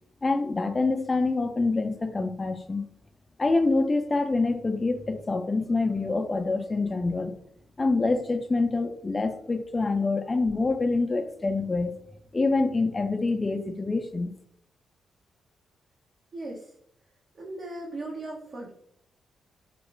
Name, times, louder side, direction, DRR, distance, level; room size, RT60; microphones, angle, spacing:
voice 1, 0.2-2.9 3.4-7.3 7.8-11.9 12.3-14.3, left 3 dB, 35° left, 6 dB, 0.3 m, -26 dB
voice 2, 16.3-16.7 17.3-18.7, right 2 dB, 55° right, -2 dB, 0.5 m, -37 dB
2.2 x 2.1 x 3.1 m, 0.67 s
hypercardioid pair, 45°, 0 cm